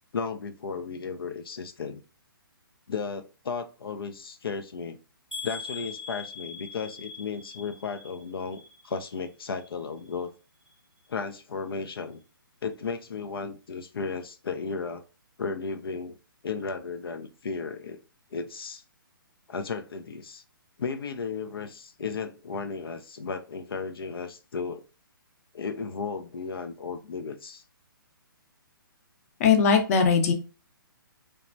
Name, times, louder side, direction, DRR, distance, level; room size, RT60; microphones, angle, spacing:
voice 1, 0.1-2.0 2.9-5.0 5.4-10.3 11.1-12.2 12.6-15.0 15.4-16.2 16.4-18.0 18.3-18.8 19.5-20.4 20.8-24.8 25.5-27.6, left 5 dB, 85° left, 0.4 m, -34 dB
sound 1, 5.3-9.3 9.6-10.2 10.7-10.8 11.1-11.2, left 5 dB, ahead, 0.7 m, -42 dB
voice 2, 29.4-30.3, left 6 dB, 40° left, 0.6 m, -20 dB
3.3 x 2.0 x 2.5 m
hypercardioid pair, 145°, 12 cm